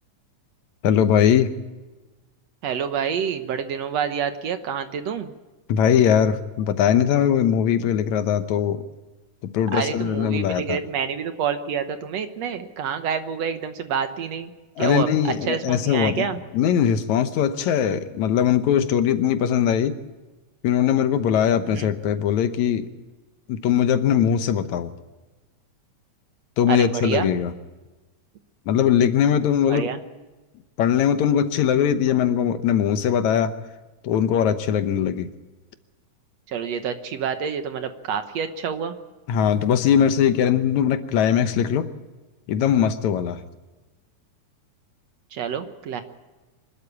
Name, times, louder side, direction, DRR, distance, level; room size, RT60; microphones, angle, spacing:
voice 1, 0.8-1.6 5.7-8.8 9.4-10.8 14.8-16.3 16.5-20.0 20.6-22.9 23.5-24.9 26.6-27.5 28.7-29.9 30.8-33.6 34.0-35.3 39.3-41.9 42.5-43.4, left 9 dB, 75° left, 10 dB, 2.3 m, -20 dB
voice 2, 2.6-5.3 9.7-14.5 14.8-16.4 21.7-21.9 26.7-27.3 29.7-30.0 36.5-39.0 45.3-46.0, right 7 dB, 65° right, 8 dB, 2.1 m, -28 dB
25.5 x 12.5 x 8.4 m, 1.2 s
omnidirectional pair, 3.5 m